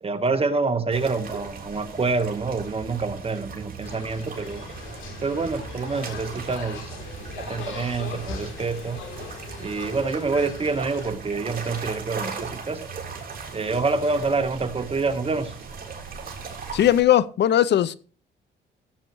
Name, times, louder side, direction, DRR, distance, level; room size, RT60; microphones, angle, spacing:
voice 1, 0.0-4.6 5.2-9.0 9.6-12.8 13.5-15.6, right 4 dB, 30° right, 1.2 m, -27 dB
sound 1, 0.9-17.0, right 5 dB, 45° right, 3.4 m, -38 dB
sound 2, 3.8-11.1, left 4 dB, 80° left, 3.1 m, -39 dB
voice 2, 16.7-18.0, left 11 dB, 60° left, 0.6 m, -19 dB
16.0 x 8.0 x 3.0 m
cardioid pair, 90°, 20 cm